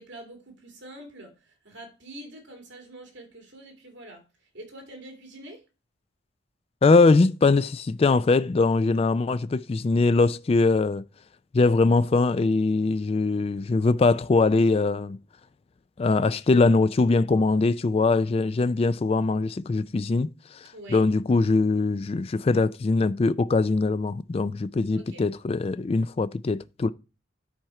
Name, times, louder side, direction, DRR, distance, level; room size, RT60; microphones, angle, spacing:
voice 1, 0.0-4.2 4.5-5.6 20.7-21.0 24.9-25.2, right 1 dB, 70° right, 2.8 m, -45 dB
voice 2, 6.8-11.0 11.5-15.2 16.0-20.3 20.6-26.9, left 3 dB, 30° left, 0.3 m, -22 dB
10.5 x 4.4 x 4.8 m
head